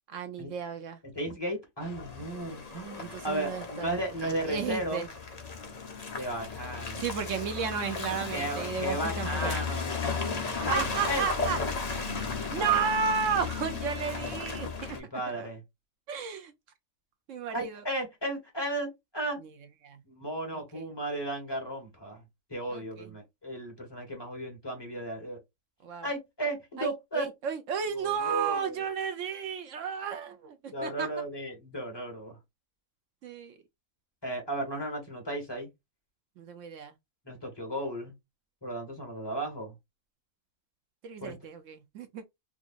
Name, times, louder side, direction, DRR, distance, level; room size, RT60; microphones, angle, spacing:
voice 1, 0.1-1.0 3.0-5.1 7.0-9.6 10.5-11.6 12.5-15.0 15.3-15.5 16.1-16.5 17.3-17.8 19.4-19.5 19.8-20.0 20.5-20.8 22.7-23.1 25.8-26.1 26.8-31.1 33.2-33.6 36.4-36.9 41.0-42.2, right 6 dB, 70° right, 1.0 m, -33 dB
voice 2, 1.2-5.0 6.1-7.0 8.3-9.9 10.7-11.3 12.3-12.8 14.9-15.6 17.5-19.4 20.1-22.2 22.5-25.4 26.0-27.3 27.9-28.8 30.7-32.4 34.2-35.7 37.3-38.1 38.6-39.7 41.2-41.3, right 1 dB, 20° left, 1.8 m, -35 dB
Car passing by / Engine, 1.8-15.0, left 4 dB, 35° left, 0.8 m, -35 dB
4.8 x 2.5 x 2.5 m
omnidirectional pair, 1.4 m